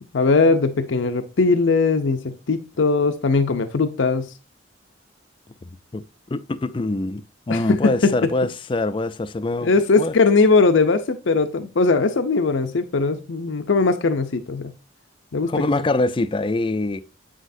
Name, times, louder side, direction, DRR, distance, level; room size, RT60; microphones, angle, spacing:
voice 1, 0.1-2.2 2.5-4.3 7.5-8.1 9.6-14.7 15.3-15.5, left 4 dB, 80° left, 0.6 m, -19 dB
voice 2, 6.3-9.7 10.0-10.1 15.5-17.0, left 2 dB, 25° left, 0.4 m, -24 dB
8.3 x 6.2 x 2.6 m
head